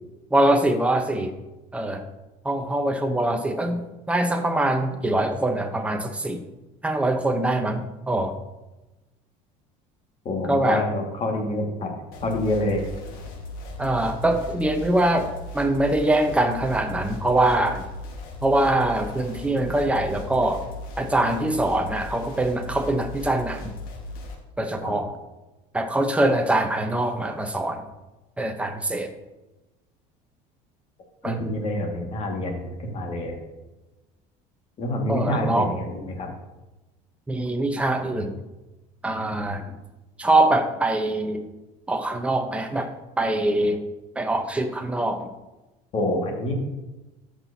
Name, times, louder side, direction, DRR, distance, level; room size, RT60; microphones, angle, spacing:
voice 1, 0.3-1.3 1.7-2.0 2.4-3.8 4.1-6.4 6.8-8.3 10.5-10.8 13.8-15.3 15.5-17.8 18.4-20.6 21.0-23.7 24.6-25.1 25.7-27.8 28.4-29.1 31.2-31.5 35.1-35.7 37.3-38.4 39.0-39.7 40.2-41.5 41.9-42.9 43.2-43.8 44.2-45.3, right 1 dB, 5° right, 5 dB, 0.9 m, -23 dB
voice 2, 10.3-12.0 12.2-12.8 24.8-25.0 31.2-33.4 34.8-36.3 45.9-46.5, left 1 dB, 40° left, 1 dB, 2.0 m, -27 dB
sound 1, 12.1-24.4, left 2 dB, 65° left, 1.7 m, -37 dB
12.5 x 6.0 x 2.8 m, 1.1 s
cardioid pair, 120°, 16 cm